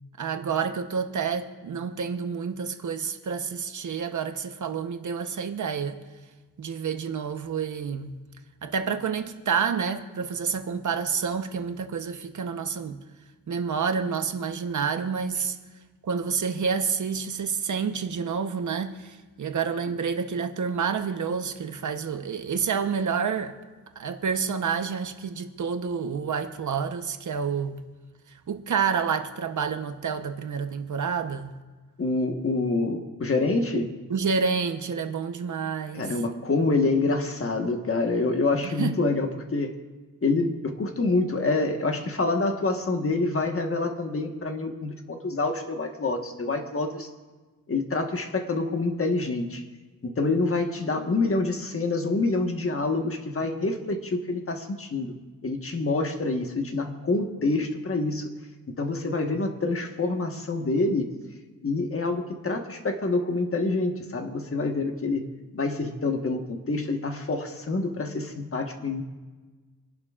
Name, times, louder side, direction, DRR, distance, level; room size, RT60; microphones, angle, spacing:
voice 1, 0.2-6.0 6.6-8.1 8.6-13.0 13.5-15.6 16.0-23.5 24.0-27.8 28.5-31.5 33.7-33.8 34.1-36.1 38.6-39.1, right 6 dB, 60° right, 1.0 m, -29 dB
voice 2, 32.0-33.9 35.9-39.8 40.2-47.1 47.7-49.6 50.0-55.1 55.4-58.3 58.8-61.1 61.6-65.2 65.5-69.0, left 3 dB, 40° left, 1.4 m, -27 dB
27.5 x 11.5 x 2.5 m
wide cardioid pair, 125°, 35 cm